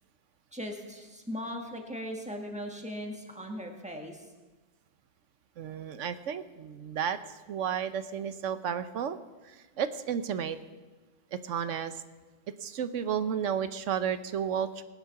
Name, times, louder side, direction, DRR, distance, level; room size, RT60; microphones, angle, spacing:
voice 1, 0.5-4.2, equal, 5° right, 2 dB, 1.7 m, -38 dB
voice 2, 5.6-7.2 7.5-9.2 9.4-10.6 11.3-11.9 12.6-14.8, right 8 dB, 75° right, 11 dB, 1.1 m, -32 dB
19.5 x 9.5 x 5.8 m, 1.3 s
omnidirectional pair, 1.3 m